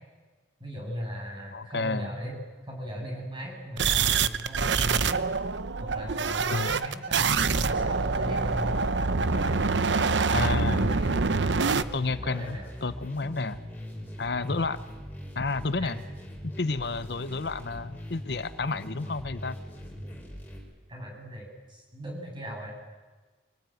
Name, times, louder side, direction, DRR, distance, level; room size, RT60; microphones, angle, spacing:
voice 1, 0.6-2.4 2.7-5.2 5.8-8.8 9.2-9.7 10.3-12.7 14.5-14.6 15.8-15.9 20.9-22.7, equal, 25° right, 0 dB, 7.5 m, -38 dB
voice 2, 1.5-2.1 6.5-6.8 10.3-10.9 11.9-13.6 14.2-14.8 15.4-16.0 16.4-19.6, left 3 dB, 60° left, 13 dB, 0.8 m, -30 dB
sound 1, 3.8-11.8, right 4 dB, 80° right, 0.8 m, -25 dB
sound 2, 9.3-20.6, equal, 10° left, 5.8 m, -41 dB
24.5 x 19.0 x 9.2 m, 1.3 s
head